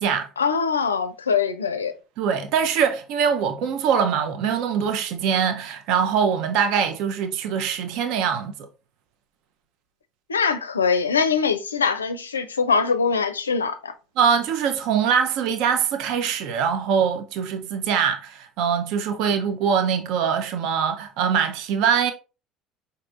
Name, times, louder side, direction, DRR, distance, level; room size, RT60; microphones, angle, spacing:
voice 1, 0.4-1.9 10.3-13.9, left 5 dB, 80° left, 0.4 m, -23 dB
voice 2, 2.2-8.5 14.2-22.1, right 7 dB, 55° right, 0.5 m, -23 dB
5.2 x 2.6 x 2.6 m
figure-of-eight pair, 65°, 0 cm